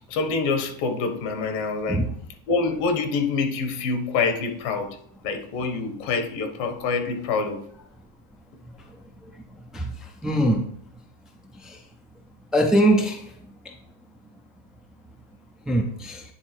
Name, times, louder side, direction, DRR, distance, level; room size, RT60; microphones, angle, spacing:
voice 1, 0.1-2.0 2.5-5.0 5.2-7.6, left 4 dB, 85° left, 1.5 m, -26 dB
voice 2, 10.2-10.6 11.6-11.8 12.5-13.2 15.7-16.2, right 1 dB, ahead, 0.4 m, -21 dB
9.7 x 3.7 x 4.4 m
cardioid pair, 155°, 50 cm